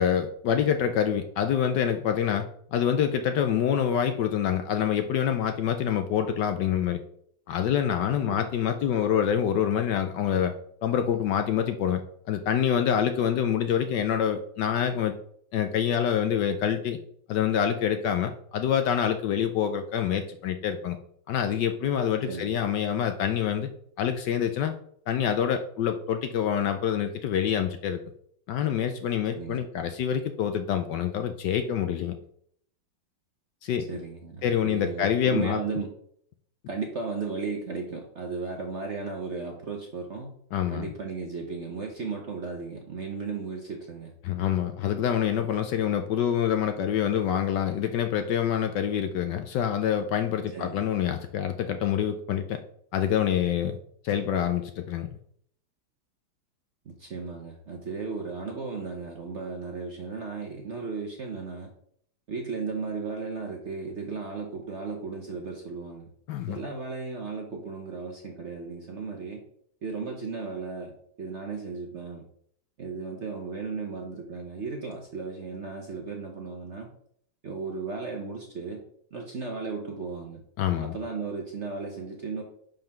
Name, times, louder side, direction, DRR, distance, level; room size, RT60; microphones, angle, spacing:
voice 1, 0.0-7.0 7.5-10.5 10.8-12.0 12.3-15.1 15.5-17.0 17.3-21.0 21.3-23.7 24.0-24.7 25.1-28.0 28.5-32.2 33.6-33.9 34.4-35.6 40.5-40.9 44.2-52.6 52.9-53.8 54.0-55.1 66.3-66.6 80.6-81.0, left 9 dB, 70° left, 8 dB, 1.1 m, -26 dB
voice 2, 22.3-22.6 29.3-29.6 33.9-35.9 36.7-40.3 40.7-44.1 50.5-50.9 56.8-61.7 62.3-66.1 66.5-69.4 69.8-72.2 72.8-76.9 77.4-78.8 79.1-80.4 80.8-82.4, right 4 dB, 50° right, 2 dB, 0.9 m, -35 dB
5.5 x 5.4 x 5.8 m, 0.67 s
omnidirectional pair, 2.2 m